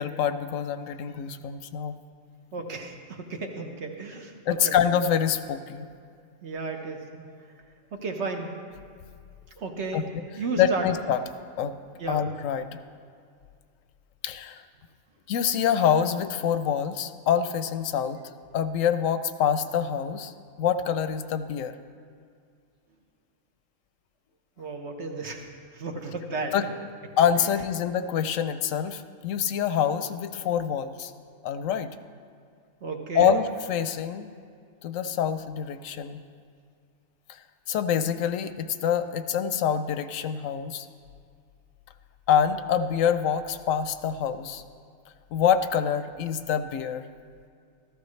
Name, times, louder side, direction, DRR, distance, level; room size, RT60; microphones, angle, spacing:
voice 1, 0.0-2.0 4.5-5.9 9.9-10.0 10.6-11.2 11.6-11.7 12.1-12.8 14.2-14.6 15.3-18.2 18.5-21.8 26.5-26.6 27.2-31.1 31.4-31.9 33.1-34.3 34.8-36.2 37.3-37.4 37.7-40.9 42.3-44.6 45.3-47.0, left 8 dB, 85° left, 11 dB, 1.0 m, -26 dB
voice 2, 2.5-4.8 6.4-7.3 7.9-8.5 9.6-10.0 10.4-10.9 12.0-12.3 24.6-26.5 27.4-27.5 32.8-33.4, right 3 dB, 60° right, 3 dB, 1.4 m, -33 dB
15.0 x 13.5 x 3.2 m, 2.2 s
omnidirectional pair, 1.3 m